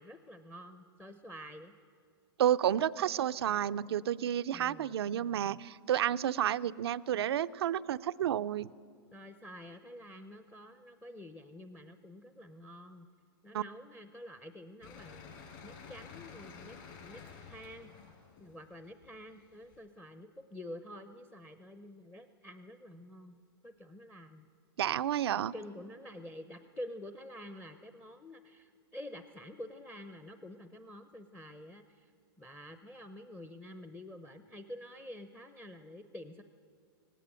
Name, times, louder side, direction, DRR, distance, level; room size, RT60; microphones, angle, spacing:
voice 1, 0.0-1.7 4.5-4.9 9.1-13.1 13.4-15.3 15.6-17.2 17.5-17.9 18.4-23.4 23.6-24.5 25.3-32.1 32.4-36.4, left 1 dB, 5° left, 10 dB, 0.7 m, -48 dB
voice 2, 2.4-8.7 13.5-13.6 24.8-25.5, right 10 dB, 80° right, 16 dB, 0.5 m, -31 dB
sound 1, 14.8-19.8, left 6 dB, 55° left, 5.5 m, -51 dB
18.0 x 17.0 x 8.8 m, 2.2 s
hypercardioid pair, 140°, 13 cm